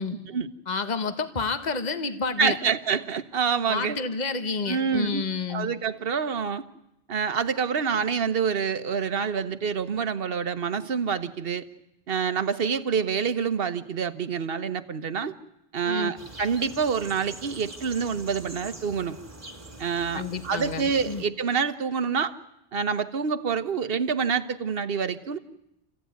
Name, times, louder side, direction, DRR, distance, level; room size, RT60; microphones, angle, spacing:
voice 1, 0.7-2.6 3.7-5.7 15.8-16.1 20.1-21.2, left 4 dB, 45° left, 9 dB, 1.4 m, -29 dB
voice 2, 2.4-4.0 4.7-6.7 7.1-11.7 12.1-15.3 15.7-19.2 19.8-22.3 22.7-25.4, right 6 dB, 65° right, 12 dB, 1.2 m, -27 dB
sound 1, 16.2-21.2, right 2 dB, 40° right, 2.6 m, -44 dB
28.5 x 15.5 x 9.4 m, 0.88 s
omnidirectional pair, 1.0 m